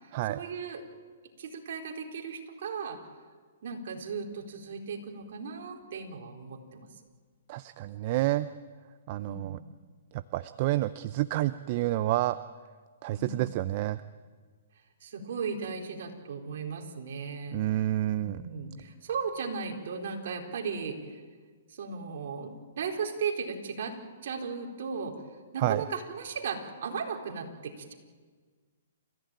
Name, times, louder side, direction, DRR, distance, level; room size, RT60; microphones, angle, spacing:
voice 1, 0.3-0.8 1.4-3.0 3.6-6.9 9.2-9.7 13.1-13.6 15.0-17.6 18.2-21.2 21.7-23.9 24.2-25.2 25.5-27.9, right 5 dB, 60° right, 2 dB, 4.3 m, -36 dB
voice 2, 7.5-8.5 9.1-9.6 10.1-12.4 13.0-14.0 17.5-18.4 25.6-25.8, right 15 dB, 40° right, 13 dB, 0.6 m, -29 dB
29.5 x 15.5 x 9.1 m, 1.5 s
hypercardioid pair, 140°, 0 cm